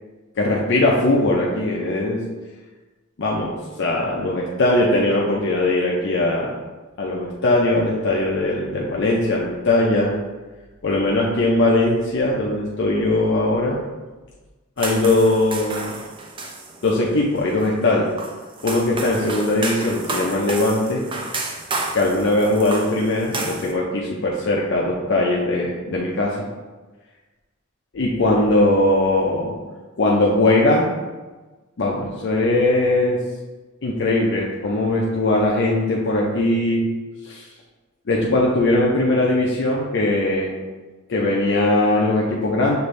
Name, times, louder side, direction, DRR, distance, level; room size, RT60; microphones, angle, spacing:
voice 1, 0.4-2.2 3.2-6.6 7.0-10.1 10.8-13.8 14.8-15.9 16.8-18.1 18.6-21.0 21.9-26.4 27.9-29.7 30.0-30.9 31.8-33.2 33.8-36.9 37.2-37.4 38.1-40.6 41.1-42.8, left 2 dB, 60° left, -3 dB, 0.6 m, -20 dB
sound 1, 14.8-23.7, right 3 dB, 25° right, 0.4 m, -31 dB
6.5 x 2.6 x 3.2 m, 1.2 s
head